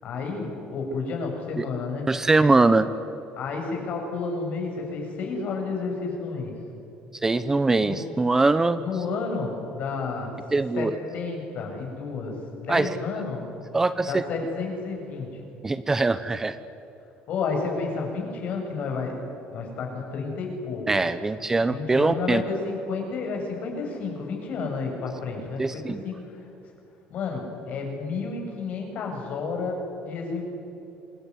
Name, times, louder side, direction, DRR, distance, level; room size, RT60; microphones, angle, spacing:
voice 1, 0.0-2.1 3.4-6.5 7.8-8.1 8.8-10.4 10.8-13.5 14.0-15.4 17.3-19.2 19.5-20.9 21.7-26.4 27.1-30.4, left 4 dB, 50° left, 2 dB, 7.6 m, -31 dB
voice 2, 2.1-2.9 7.2-8.8 10.5-10.9 12.7-13.0 13.7-14.2 15.6-16.6 20.9-22.4 25.6-26.0, right 3 dB, 15° right, 12 dB, 0.8 m, -22 dB
26.5 x 21.0 x 9.9 m, 2.9 s
cardioid pair, 140°, 3 cm